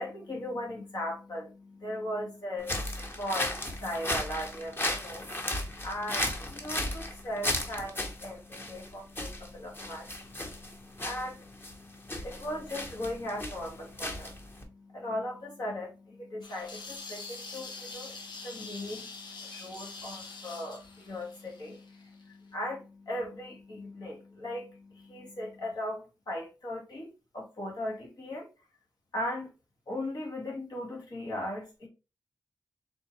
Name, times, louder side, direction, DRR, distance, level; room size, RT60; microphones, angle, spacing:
voice 1, 0.0-28.5 29.1-29.5 29.9-31.9, left 1 dB, 65° left, 1.5 m, -38 dB
sound 1, 2.6-14.6, left 1 dB, 30° left, 1.1 m, -35 dB
sound 2, 16.4-22.2, left 3 dB, 80° left, 1.0 m, -45 dB
4.2 x 3.1 x 3.0 m
cardioid pair, 55°, 7 cm